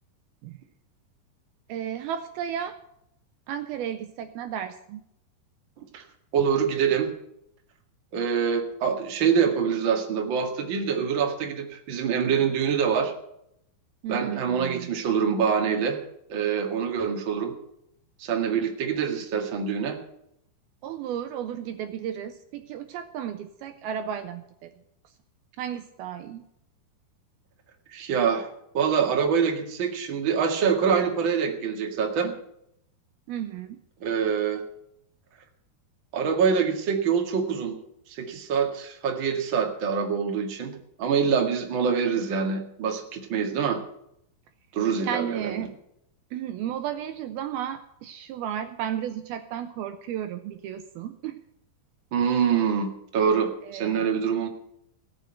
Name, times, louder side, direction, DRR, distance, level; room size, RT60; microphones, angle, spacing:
voice 1, 1.7-2.8 3.5-5.0 14.0-14.9 20.8-24.7 25.6-26.4 33.3-33.8 45.0-45.8 46.3-51.4 52.3-52.4 53.6-54.1, right 9 dB, 75° right, 9 dB, 2.5 m, -33 dB
voice 2, 6.3-7.1 8.1-13.1 14.1-16.0 16.3-17.5 18.2-20.0 27.9-32.3 34.0-34.6 36.1-37.8 38.1-43.8 44.7-45.5 52.1-54.5, right 6 dB, 40° right, 3 dB, 1.9 m, -25 dB
17.5 x 6.6 x 9.0 m, 0.75 s
omnidirectional pair, 4.8 m